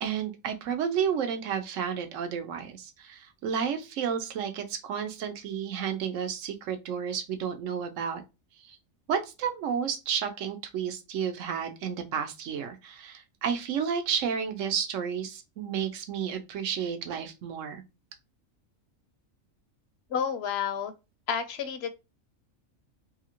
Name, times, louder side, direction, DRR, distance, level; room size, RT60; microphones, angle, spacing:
voice 1, 0.0-8.2 8.6-8.8 9.1-17.8, right 7 dB, 70° right, 1.0 m, -31 dB
voice 2, 20.1-20.9 21.3-21.9, left 7 dB, 65° left, 0.7 m, -30 dB
2.8 x 2.5 x 2.8 m
omnidirectional pair, 1.4 m